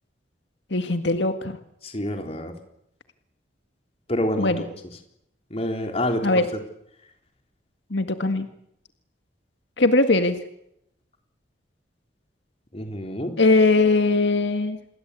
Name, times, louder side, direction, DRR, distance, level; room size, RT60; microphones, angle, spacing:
voice 1, 0.7-1.6 4.4-4.6 6.2-6.5 7.9-8.5 9.8-10.4 13.4-14.8, left 2 dB, 80° left, 8 dB, 1.9 m, -20 dB
voice 2, 1.8-2.5 4.1-4.7 5.5-6.3 12.7-13.3, left 1 dB, 35° left, 4 dB, 3.9 m, -27 dB
28.5 x 21.5 x 8.5 m, 0.78 s
head